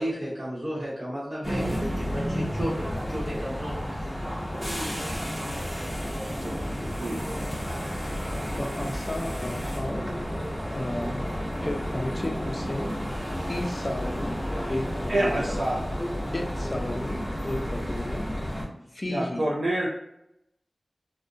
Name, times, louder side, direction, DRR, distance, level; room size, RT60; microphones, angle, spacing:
voice 1, 0.0-4.1, equal, 55° right, -9 dB, 0.8 m, -33 dB
sound 1, 1.4-18.6, equal, 15° left, 0.8 m, -31 dB
voice 2, 5.8-6.2 8.5-10.1 10.7-11.3 11.6-13.0 13.5-15.6 16.3-18.3 18.9-19.5, left 1 dB, 35° left, 3 dB, 0.4 m, -33 dB
voice 3, 6.4-7.2 15.1-15.9 19.1-19.9, right 1 dB, 75° right, -4 dB, 0.4 m, -28 dB
2.5 x 2.0 x 2.6 m, 0.82 s
wide cardioid pair, 65°, 0 cm